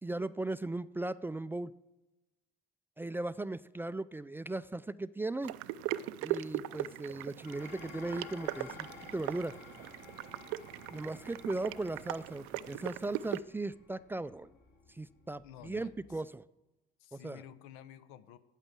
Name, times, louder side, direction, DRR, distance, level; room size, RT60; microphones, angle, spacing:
voice 1, 0.0-1.7 3.0-5.5 6.2-9.6 10.9-14.5 14.9-16.4 17.1-17.4, right 2 dB, 10° right, 15 dB, 0.3 m, -37 dB
sound 1, 5.4-13.4, right 14 dB, 80° right, 0.5 m, -39 dB
Dishes pots and pans, 7.4-16.2, left 4 dB, 55° left, 2.5 m, -54 dB
voice 2, 15.4-16.2 17.0-18.4, left 10 dB, 80° left, 14 dB, 0.8 m, -52 dB
8.7 x 8.2 x 7.4 m, 1.0 s
supercardioid pair, 85°, 21 cm